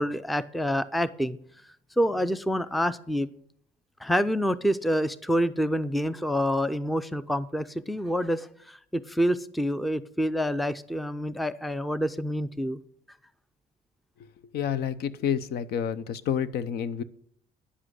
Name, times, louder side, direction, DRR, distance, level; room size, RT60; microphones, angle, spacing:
voice 1, 0.0-1.4 2.0-3.3 4.0-12.8, equal, ahead, 15 dB, 0.5 m, -27 dB
voice 2, 14.5-17.0, left 8 dB, 70° left, 15 dB, 0.8 m, -29 dB
10.0 x 7.5 x 6.4 m, 0.65 s
cardioid pair, 110°, 17 cm